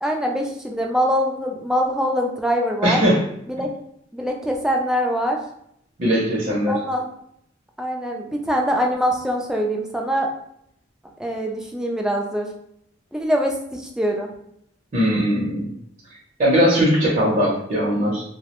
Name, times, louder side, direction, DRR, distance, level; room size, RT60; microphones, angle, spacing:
voice 1, 0.0-3.0 3.5-3.7 4.1-5.4 6.7-7.1 7.8-10.3 11.2-12.5 13.1-14.3, equal, 5° right, 0 dB, 0.3 m, -23 dB
voice 2, 2.8-3.2 6.0-6.8 14.9-15.7 16.4-18.2, equal, 45° right, -6 dB, 0.6 m, -19 dB
2.3 x 2.0 x 2.9 m, 0.73 s
head